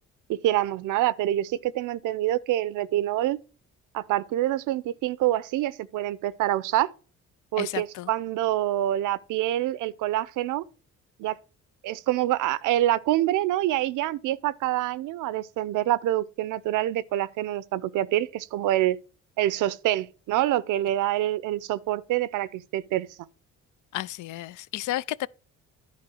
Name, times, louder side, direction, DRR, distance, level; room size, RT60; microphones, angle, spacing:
voice 1, 0.3-3.4 3.9-6.9 7.5-10.6 11.2-11.4 11.8-19.0 19.4-23.1, right 14 dB, 85° right, 0.6 m, -26 dB
voice 2, 7.6-8.1 23.9-25.3, left 15 dB, 85° left, 0.5 m, -32 dB
10.5 x 4.1 x 6.2 m
cardioid pair, 90°, 30 cm